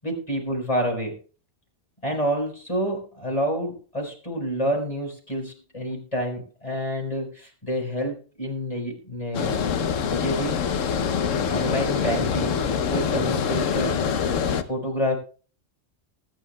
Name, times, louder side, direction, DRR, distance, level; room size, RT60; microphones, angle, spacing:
voice 1, 0.0-1.1 2.0-9.6 10.1-10.6 11.5-14.1 14.6-15.2, equal, 25° left, 1 dB, 4.6 m, -28 dB
Water, 9.3-14.6, left 7 dB, 75° left, 1.2 m, -25 dB
19.5 x 10.5 x 2.2 m, 0.39 s
omnidirectional pair, 1.3 m